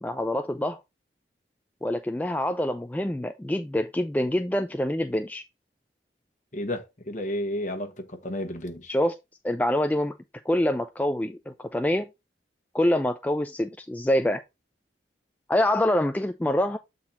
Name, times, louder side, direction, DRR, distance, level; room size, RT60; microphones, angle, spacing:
voice 1, 0.0-0.8 1.8-5.4 8.9-9.1 9.4-10.2 10.5-12.1 12.7-14.4 15.5-16.8, left 1 dB, 10° left, 0.3 m, -25 dB
voice 2, 6.5-8.9, left 1 dB, 45° left, 1.2 m, -32 dB
7.4 x 3.9 x 4.0 m
head